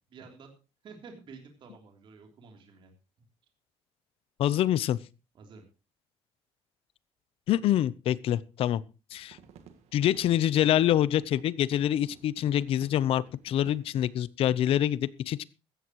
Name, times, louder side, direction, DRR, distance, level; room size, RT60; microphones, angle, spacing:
voice 1, 0.1-0.5 0.8-2.9 5.3-5.7, right 4 dB, 50° right, 3 dB, 3.3 m, -50 dB
voice 2, 4.4-5.0 7.5-8.8 9.1-9.4 9.9-15.4, left 11 dB, 60° left, 19 dB, 0.7 m, -26 dB
sound 1, 9.1-14.2, right 7 dB, 75° right, 1.8 m, -55 dB
16.0 x 14.0 x 3.1 m, 0.31 s
cardioid pair, 165°, 11 cm